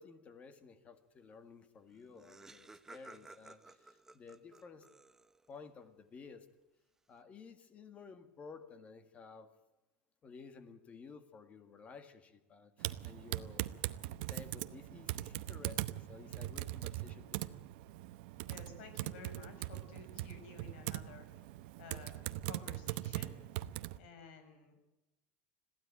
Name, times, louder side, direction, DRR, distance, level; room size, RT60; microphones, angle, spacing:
voice 1, 0.0-4.9 5.5-6.5 7.1-9.5 10.2-13.7 14.3-17.5, left 5 dB, 20° left, 10 dB, 1.9 m, -54 dB
Laughter, 1.6-1.7 1.9-5.6, right 2 dB, 5° right, 0.7 m, -56 dB
Typing, 12.8-24.0, right 16 dB, 65° right, 0.9 m, -41 dB
voice 2, 18.4-21.3 21.8-23.3 23.9-24.8, left 4 dB, 80° left, 7 dB, 6.0 m, -53 dB
22.0 x 15.5 x 8.8 m, 1.0 s
supercardioid pair, 160°, 6 cm